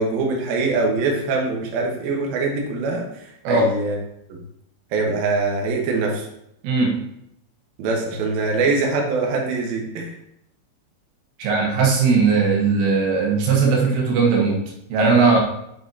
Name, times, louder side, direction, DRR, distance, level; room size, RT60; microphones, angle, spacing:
voice 1, 0.0-3.0 3.5-4.0 4.3-4.4 4.9-6.3 7.8-10.1, right 3 dB, 65° right, 0 dB, 2.6 m, -23 dB
voice 2, 6.6-7.0 11.4-14.6 14.9-15.4, right 4 dB, 90° right, 0 dB, 3.9 m, -18 dB
7.4 x 6.5 x 2.8 m, 0.78 s
omnidirectional pair, 5.5 m